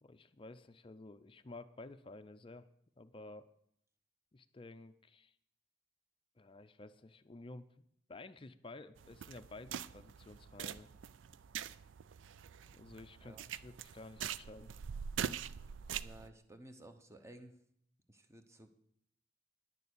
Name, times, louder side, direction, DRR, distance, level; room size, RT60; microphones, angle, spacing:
voice 1, 0.0-2.7 3.0-3.5 4.3-5.3 6.4-7.7 8.1-10.9 12.7-14.7, left 2 dB, 30° left, 11 dB, 0.5 m, -52 dB
sound 1, 9.0-16.3, right 8 dB, 85° right, 0.4 m, -44 dB
voice 2, 16.0-17.5 18.1-18.7, right 1 dB, 15° right, 7 dB, 1.0 m, -55 dB
10.5 x 6.9 x 8.3 m, 0.69 s
head